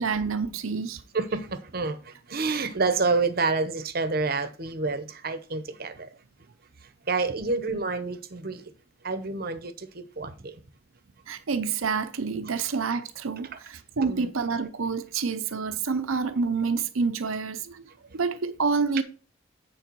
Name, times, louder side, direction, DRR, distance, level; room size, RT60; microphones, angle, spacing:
voice 1, 0.0-1.0 11.3-17.9 18.1-19.0, right 5 dB, 90° right, 0.7 m, -28 dB
voice 2, 1.1-6.1 7.1-8.7 9.0-10.6 14.0-14.3, right 3 dB, 50° right, 0.8 m, -28 dB
9.6 x 4.7 x 4.5 m
head